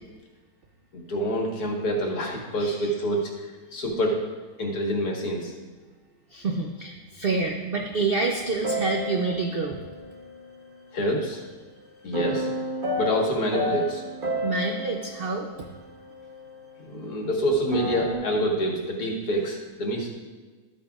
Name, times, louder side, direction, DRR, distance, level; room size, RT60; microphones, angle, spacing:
voice 1, 0.9-3.3 3.7-4.2 4.6-5.5 10.9-11.4 12.0-12.5 13.0-14.0 16.8-20.1, equal, 75° left, -1 dB, 2.0 m, -26 dB
voice 2, 2.6-2.9 6.3-9.8 14.4-15.5, right 3 dB, 55° right, 2 dB, 0.6 m, -27 dB
sound 1, 8.3-11.1 12.1-16.5 17.5-18.1, equal, 35° right, 1.1 m, -32 dB
12.5 x 8.5 x 2.4 m, 1.4 s
omnidirectional pair, 1.7 m